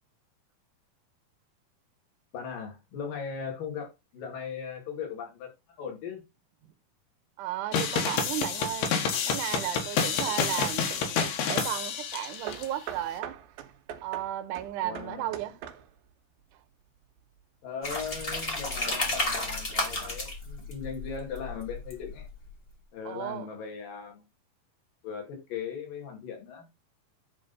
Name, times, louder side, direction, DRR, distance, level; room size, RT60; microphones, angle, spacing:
voice 1, 2.3-5.5 5.8-6.2 14.8-15.3 17.6-22.3 22.9-24.3 25.0-26.6, left 6 dB, 65° left, 4.0 m, -38 dB
voice 2, 7.4-11.2 11.5-13.4 14.0-15.6 23.1-23.5, right 13 dB, 75° right, 2.1 m, -34 dB
sound 1, 7.7-12.7, left 6 dB, 90° left, 3.5 m, -29 dB
Hammer / Wood, 8.5-8.7 9.4-11.8 12.5-16.1, right 9 dB, 90° right, 2.9 m, -43 dB
sound 2, 17.8-22.5, left 2 dB, 30° left, 1.0 m, -32 dB
10.5 x 3.8 x 5.4 m
omnidirectional pair, 4.4 m